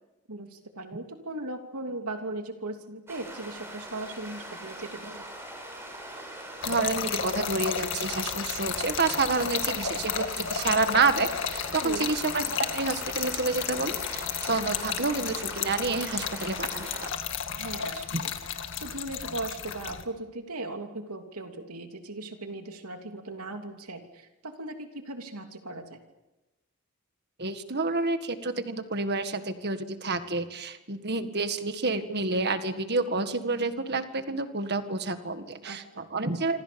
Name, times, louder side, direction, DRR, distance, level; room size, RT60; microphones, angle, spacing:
voice 1, 0.3-5.3 11.8-12.1 17.5-26.0 35.6-36.1, right 2 dB, 85° right, 5 dB, 3.1 m, -38 dB
sound 1, 3.1-17.1, right 1 dB, 10° right, 6.4 m, -42 dB
Trickle dribble / Fill (with liquid), 6.6-20.0, left 7 dB, 60° left, 2.0 m, -33 dB
voice 2, 6.6-17.1 18.1-18.2 27.4-36.6, right 3 dB, 50° right, 9 dB, 1.9 m, -29 dB
27.0 x 26.0 x 7.1 m, 1.0 s
head